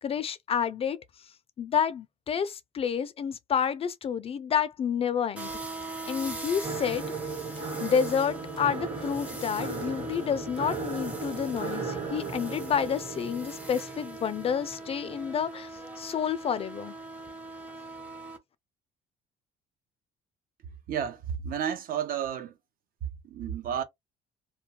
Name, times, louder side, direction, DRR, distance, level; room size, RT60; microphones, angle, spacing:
voice 1, 0.0-1.0 1.6-5.5 6.1-7.0 7.8-15.7 16.0-16.9, left 7 dB, 35° left, 0.3 m, -29 dB
sound 1, 5.3-18.4, right 2 dB, 10° right, 0.6 m, -41 dB
sound 2, 6.6-15.5, right 4 dB, 30° right, 1.0 m, -37 dB
voice 2, 20.9-22.5 23.2-23.8, right 8 dB, 60° right, 0.6 m, -31 dB
2.2 x 2.2 x 2.9 m
cardioid pair, 110°, 17 cm